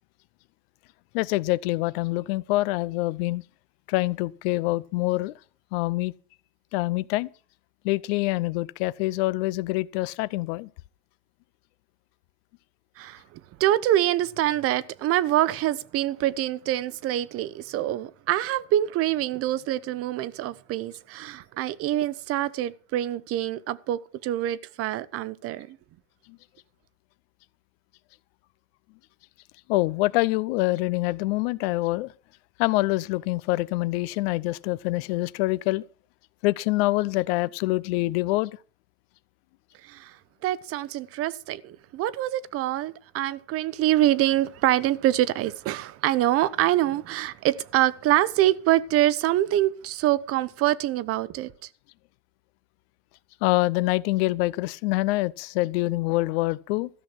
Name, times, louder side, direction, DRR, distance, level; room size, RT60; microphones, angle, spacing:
voice 1, 1.1-3.4 3.9-5.3 5.7-6.1 6.7-7.3 7.8-10.7 29.7-32.1 32.6-35.8 36.4-38.5 53.4-56.9, left 20 dB, 75° left, 0.6 m, -25 dB
voice 2, 13.0-25.8 39.8-40.1 40.4-51.5, right 14 dB, 45° right, 0.8 m, -25 dB
13.5 x 6.3 x 7.4 m
supercardioid pair, 120°, 31 cm